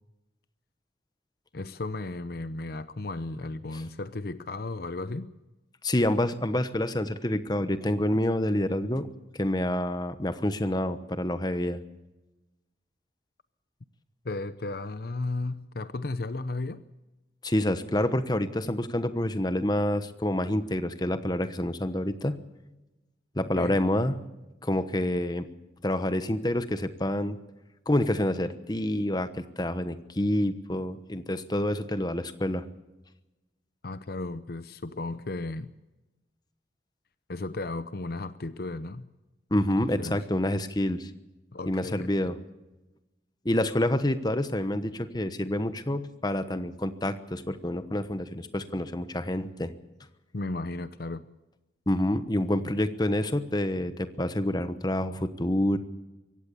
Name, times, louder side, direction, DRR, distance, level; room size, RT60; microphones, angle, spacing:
voice 1, 1.5-5.3 14.2-16.9 23.5-23.8 33.8-35.7 37.3-39.1 39.8-40.2 41.5-42.3 50.3-51.3, left 2 dB, 55° left, 13 dB, 0.7 m, -34 dB
voice 2, 5.8-9.1 9.4-11.8 17.4-22.4 23.3-24.2 24.6-25.5 25.8-27.4 27.9-32.7 39.5-41.1 41.7-42.3 43.4-49.7 51.9-55.8, left 1 dB, 20° left, 11 dB, 1.1 m, -27 dB
23.5 x 17.0 x 7.0 m, 1.0 s
head